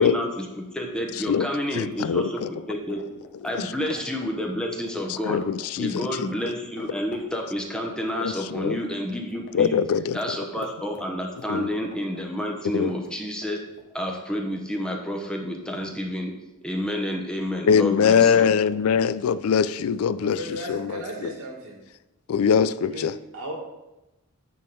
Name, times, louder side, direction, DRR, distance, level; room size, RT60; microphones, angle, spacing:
voice 1, 0.0-3.0 3.4-5.4 5.8-9.7 10.1-13.6 13.9-16.3 16.6-18.5, equal, 5° left, 1 dB, 0.8 m, -29 dB
voice 2, 1.3-2.5 3.4-3.7 5.2-6.3 8.2-8.8 9.5-10.2 11.5-11.7 12.7-12.9 17.7-21.3 22.3-23.1, left 7 dB, 70° left, 16 dB, 0.3 m, -23 dB
sound 1, 1.9-6.5 6.8-6.9 7.1-8.9 9.1-13.9, left 3 dB, 55° left, 1.0 m, -49 dB
voice 3, 20.2-21.8 22.9-23.5, right 1 dB, 75° right, -1 dB, 2.2 m, -36 dB
9.2 x 3.7 x 5.3 m, 0.98 s
head